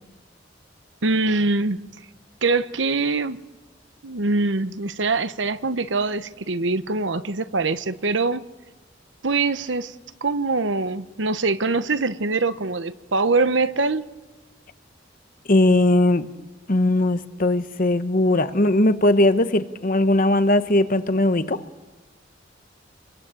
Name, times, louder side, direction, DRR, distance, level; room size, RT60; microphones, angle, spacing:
voice 1, 1.0-1.8 2.4-3.4 4.0-8.5 9.2-9.9 10.2-14.0, right 3 dB, 75° right, 1.1 m, -23 dB
voice 2, 15.5-16.3 16.7-21.6, left 1 dB, 45° left, 1.2 m, -19 dB
28.5 x 22.5 x 9.0 m
head